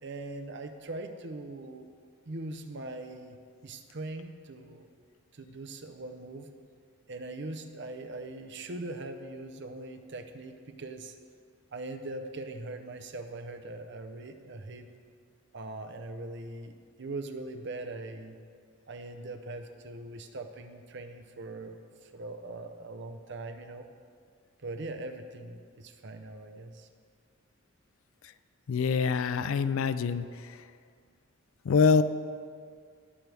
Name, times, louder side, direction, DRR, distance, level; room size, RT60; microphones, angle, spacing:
voice 1, 0.0-1.9 2.3-3.4 3.6-4.9 5.3-6.5 7.1-11.1 11.7-14.9 15.5-18.4 18.9-23.9 24.6-26.9, right 2 dB, 55° right, 7 dB, 0.7 m, -41 dB
voice 2, 28.7-30.6 31.6-32.0, left 5 dB, 70° left, 13 dB, 0.4 m, -25 dB
17.0 x 6.2 x 3.4 m, 2.1 s
head